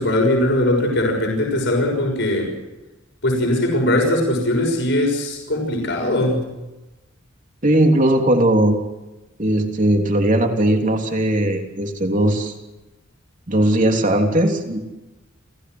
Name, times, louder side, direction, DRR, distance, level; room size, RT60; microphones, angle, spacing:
voice 1, 0.0-2.5 3.2-6.5, left 1 dB, 60° left, 1 dB, 6.4 m, -20 dB
voice 2, 7.6-8.8 9.4-12.5 13.5-14.8, right 1 dB, 40° right, 3 dB, 3.2 m, -18 dB
29.5 x 16.5 x 7.9 m, 1.0 s
head